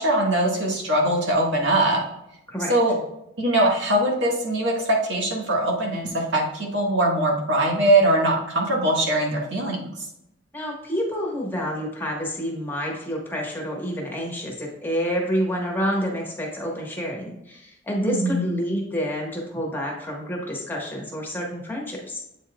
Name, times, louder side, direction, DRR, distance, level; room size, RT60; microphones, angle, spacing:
voice 1, 0.0-2.0 2.7-3.0 3.4-10.0 18.0-18.5, right 1 dB, 65° right, -1 dB, 1.5 m, -22 dB
voice 2, 10.5-22.2, equal, 10° left, -1 dB, 1.3 m, -28 dB
8.2 x 5.5 x 2.3 m, 0.86 s
head